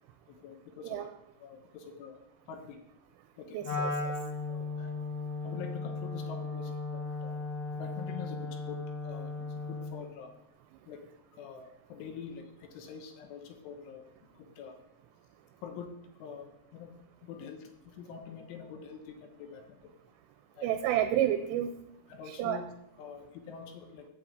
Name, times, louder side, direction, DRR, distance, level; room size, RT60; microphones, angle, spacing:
voice 1, 0.3-1.1 1.4-2.2 2.5-2.8 3.4-3.6 4.5-5.1 5.4-7.4 7.8-10.3 10.9-11.0 11.3-14.1 14.3-14.8 15.6-15.9 16.2-16.9 17.2-19.9 20.5-20.7 22.1-22.6 23.0-24.1, left 6 dB, 75° left, 4 dB, 3.5 m, -45 dB
voice 2, 3.5-4.1 20.6-21.7 22.4-22.6, right 11 dB, 85° right, 7 dB, 3.2 m, -29 dB
Wind instrument woodwind instrument, 3.6-10.0, left 3 dB, 45° left, 1.7 m, -36 dB
8.6 x 8.2 x 7.9 m, 0.84 s
omnidirectional pair, 5.7 m